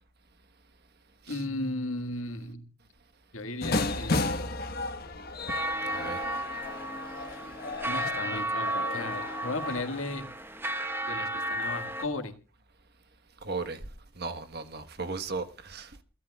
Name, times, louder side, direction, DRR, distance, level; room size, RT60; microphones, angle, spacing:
voice 1, 1.3-2.7 3.3-4.5 7.3-7.5 7.8-10.3 11.1-12.3, left 2 dB, 85° left, 1.9 m, -35 dB
sound 1, 3.6-10.0, left 3 dB, 50° left, 1.4 m, -34 dB
sound 2, 5.5-12.0, right 1 dB, 10° right, 1.1 m, -33 dB
voice 2, 13.4-13.8 14.1-16.0, right 3 dB, 50° right, 1.3 m, -36 dB
28.5 x 12.0 x 2.4 m
head